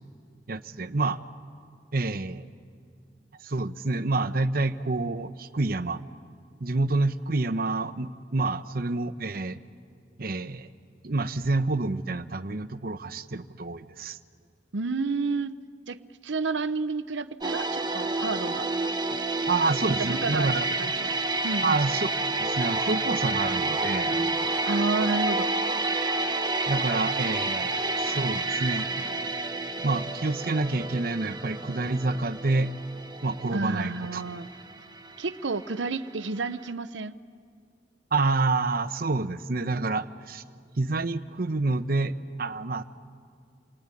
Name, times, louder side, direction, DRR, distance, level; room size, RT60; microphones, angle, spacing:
voice 1, 0.5-1.2 1.9-2.5 3.4-6.0 6.6-9.6 10.2-10.7 11.0-14.2 19.5-20.7 21.6-22.1 22.4-24.1 26.7-28.9 29.8-32.8 33.2-34.2 38.1-40.4 40.8-42.8, right 3 dB, 50° right, 12 dB, 0.8 m, -28 dB
voice 2, 14.7-15.6 15.9-16.0 16.2-18.7 20.0-21.1 21.4-21.8 24.7-25.5 33.5-34.5 35.2-37.2, right 3 dB, 80° right, 13 dB, 0.7 m, -30 dB
sound 1, 17.4-36.2 36.5-36.7, right 3 dB, 25° right, 1.0 m, -29 dB
28.5 x 20.0 x 9.8 m, 2.3 s
head